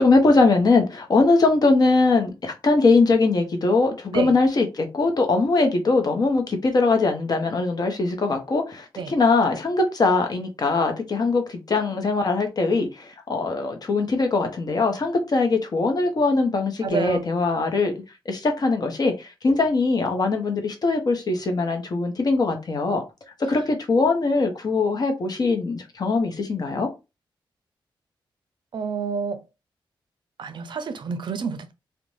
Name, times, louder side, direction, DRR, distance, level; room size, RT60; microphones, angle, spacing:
voice 1, 0.0-17.9 18.3-23.0 23.5-26.9, left 3 dB, 50° left, 0.7 m, -21 dB
voice 2, 16.8-17.2 28.7-29.4 30.4-31.7, right 6 dB, 60° right, 0.4 m, -28 dB
2.5 x 2.1 x 3.1 m
cardioid pair, 95°, 9 cm